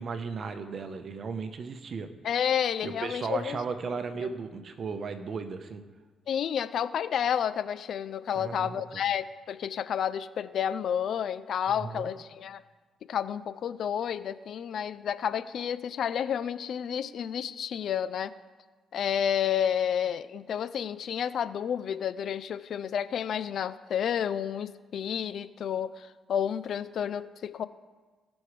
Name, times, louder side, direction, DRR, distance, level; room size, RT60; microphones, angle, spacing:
voice 1, 0.0-2.1 2.8-5.8 8.4-9.0 11.7-12.1, right 5 dB, 50° right, 8 dB, 0.9 m, -36 dB
voice 2, 2.2-3.6 3.9-4.0 6.3-12.6 13.1-18.3 18.9-27.7, left 8 dB, 65° left, 15 dB, 0.4 m, -30 dB
18.5 x 6.3 x 3.3 m, 1.4 s
cardioid pair, 90°, 0 cm